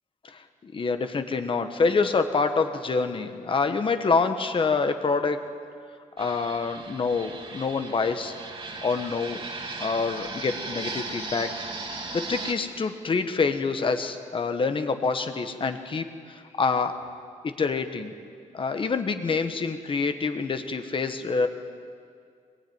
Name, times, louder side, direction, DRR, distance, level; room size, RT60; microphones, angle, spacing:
voice 1, 0.2-5.4 6.2-8.3 8.8-9.4 9.8-11.5 11.9-17.0 17.4-18.1 18.5-21.5, left 4 dB, 40° left, 7 dB, 1.4 m, -26 dB
Fixed-wing aircraft airplane, 6.2-12.5, right 3 dB, 40° right, 2.5 m, -37 dB
23.0 x 21.0 x 9.6 m, 2.2 s
wide cardioid pair, 170°, 13 cm